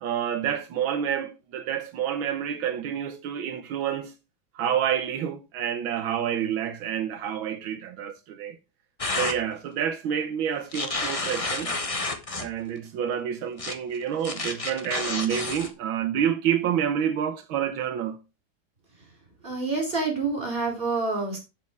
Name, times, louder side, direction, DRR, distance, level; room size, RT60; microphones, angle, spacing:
voice 1, 0.0-4.1 4.6-8.6 9.2-11.7 12.4-18.2, right 9 dB, 85° right, 1.8 m, -28 dB
sound 1, 9.0-9.4 10.7-12.5 13.6-13.7 14.2-15.7, left 3 dB, 25° left, 0.9 m, -30 dB
voice 2, 19.4-21.4, right 3 dB, 25° right, 4.8 m, -27 dB
8.0 x 7.4 x 4.6 m
omnidirectional pair, 2.2 m